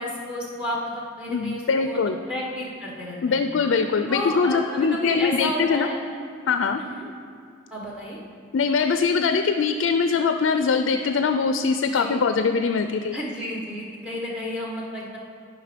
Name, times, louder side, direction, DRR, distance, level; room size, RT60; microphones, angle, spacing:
voice 1, 0.0-2.0 2.3-3.4 4.1-6.0 6.8-7.1 7.7-8.2 11.9-12.2 13.1-15.2, left 1 dB, 5° right, -3 dB, 1.1 m, -32 dB
voice 2, 1.3-2.2 3.2-5.9 6.5-6.8 8.5-13.2, left 5 dB, 75° left, 8 dB, 0.4 m, -22 dB
10.5 x 5.2 x 5.1 m, 2.4 s
head